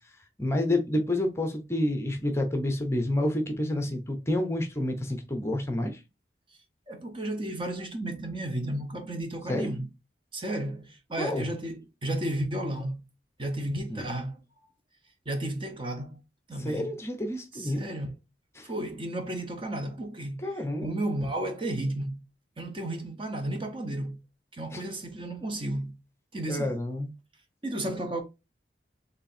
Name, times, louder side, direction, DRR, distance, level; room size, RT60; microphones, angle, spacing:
voice 1, 0.4-6.0 9.5-9.7 11.2-11.5 13.9-14.1 16.6-17.8 18.6-18.7 20.4-20.9 24.7-24.8 26.5-27.1, left 1 dB, 15° left, 0.7 m, -29 dB
voice 2, 6.9-9.9 10.3-13.0 13.4-14.4 15.3-16.2 16.5-16.9 17.5-18.1 18.6-22.2 22.6-24.2 24.5-26.0 26.3-26.7 27.6-28.2, right 1 dB, 30° right, 0.8 m, -33 dB
4.5 x 3.3 x 2.6 m
head